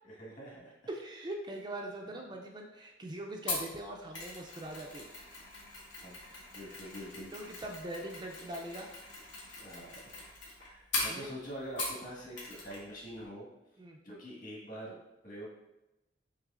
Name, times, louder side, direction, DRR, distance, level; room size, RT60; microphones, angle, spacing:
voice 1, 0.0-0.7 6.0-6.2 6.5-7.3 9.6-9.9 10.6-13.5 14.0-15.0 15.2-15.5, equal, 45° left, -4 dB, 1.5 m, -45 dB
voice 2, 0.9-5.1 6.6-6.8 7.3-8.9 10.6-10.8 11.1-11.3 13.8-14.0, right 1 dB, 25° right, 1 dB, 0.4 m, -42 dB
Mechanisms, 3.5-12.1 12.4-12.8 13.1-13.2, left 2 dB, 80° left, 1.3 m, -41 dB
6.1 x 2.9 x 2.4 m, 0.95 s
head